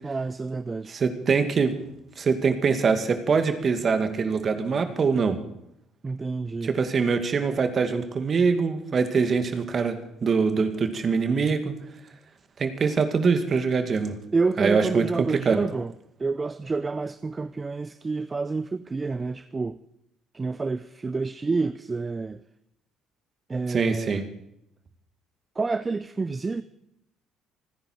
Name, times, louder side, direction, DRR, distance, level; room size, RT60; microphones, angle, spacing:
voice 1, 0.0-1.0 6.0-6.7 14.3-15.9 16.2-19.8 20.3-22.4 23.5-24.2 25.6-26.6, right 3 dB, 25° right, 0.6 m, -28 dB
voice 2, 0.9-1.7 2.2-5.4 6.6-11.7 12.6-14.1 14.6-15.6 23.7-24.2, right 5 dB, 45° right, 2.2 m, -23 dB
27.5 x 10.5 x 4.6 m
hypercardioid pair, 55°, 0 cm